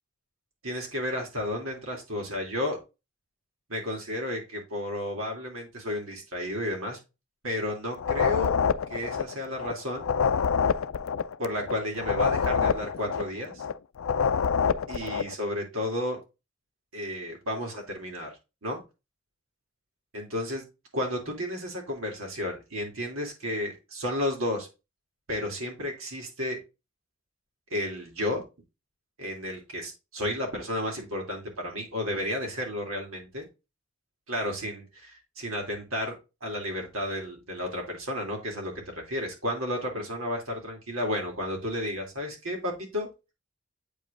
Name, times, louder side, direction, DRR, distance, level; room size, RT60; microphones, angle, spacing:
voice 1, 0.6-2.8 3.7-7.0 7.4-8.6 8.9-10.1 11.4-13.6 14.9-16.2 16.9-18.4 18.6-18.8 20.1-20.6 20.9-24.7 25.3-26.6 27.7-28.4 29.2-33.5 34.3-36.2 36.4-43.1, left 1 dB, 85° right, 1 dB, 2.7 m, -32 dB
sound 1, 8.0-9.7 10.0-13.7 14.0-15.3, left 6 dB, 75° left, 0.4 m, -26 dB
8.3 x 5.1 x 2.5 m, 0.26 s
head